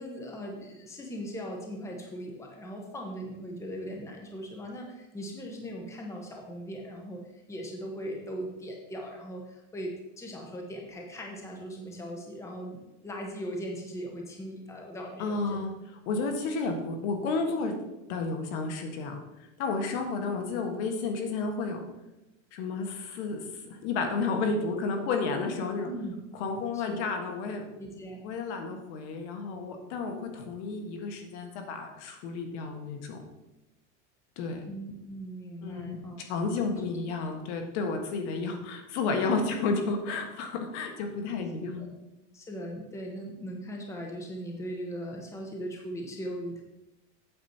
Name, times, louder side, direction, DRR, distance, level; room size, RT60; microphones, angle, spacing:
voice 1, 0.0-15.6 25.8-26.1 26.7-26.9 27.8-28.2 34.7-36.2 36.7-36.8 41.6-41.9 42.3-46.6, equal, 10° left, 1 dB, 1.0 m, -39 dB
voice 2, 15.2-15.7 16.0-17.7 18.1-19.2 19.6-21.8 22.5-23.4 23.7-25.9 26.3-27.6 28.2-33.2 34.4-34.6 35.6-41.8, left 4 dB, 65° left, 4 dB, 1.7 m, -31 dB
8.5 x 6.9 x 4.5 m, 0.97 s
supercardioid pair, 155°, 38 cm